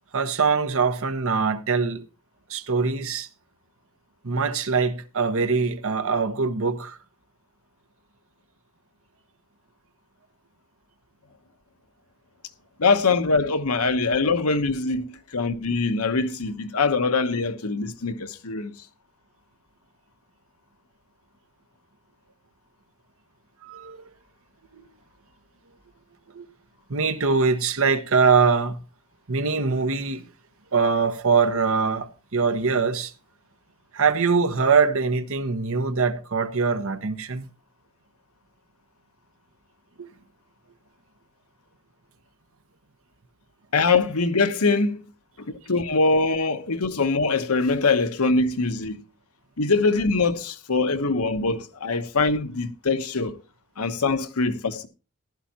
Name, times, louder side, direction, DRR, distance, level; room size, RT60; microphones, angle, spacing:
voice 1, 0.1-2.0 2.5-3.3 4.2-7.0 23.6-24.1 24.7-24.8 26.3-26.5 26.9-28.8 29.3-30.2 30.7-33.1 33.9-37.5 40.0-40.1, right 5 dB, 65° right, 1.1 m, -23 dB
voice 2, 12.8-18.7 43.7-45.0 45.7-49.0 49.6-53.4 53.8-54.9, left 3 dB, 80° left, 1.1 m, -23 dB
15.0 x 11.5 x 2.9 m
head